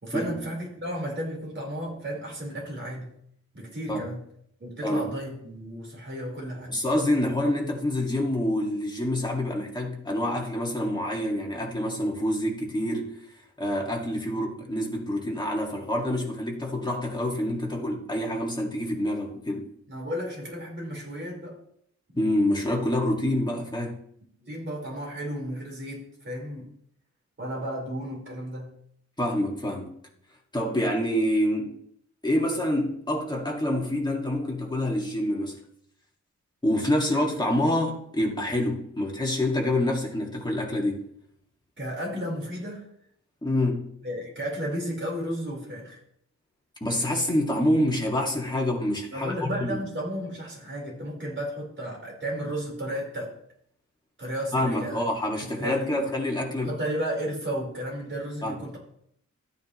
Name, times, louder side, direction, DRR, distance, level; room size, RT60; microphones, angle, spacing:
voice 1, 0.0-3.1 3.5-4.2 4.6-6.8 19.9-21.6 24.4-26.7 27.4-28.7 41.8-42.9 44.0-46.0 49.1-53.3 54.2-55.0 55.6-56.0 56.6-58.8, equal, 40° right, -3 dB, 4.6 m, -33 dB
voice 2, 6.7-13.2 13.6-19.7 22.2-24.0 29.2-29.9 30.5-31.8 32.2-35.6 36.6-41.1 43.4-43.9 46.8-49.8 54.5-56.7 58.4-58.6, left 1 dB, 15° left, -1 dB, 2.1 m, -27 dB
14.0 x 9.2 x 3.2 m, 0.70 s
wide cardioid pair, 120°, 30 cm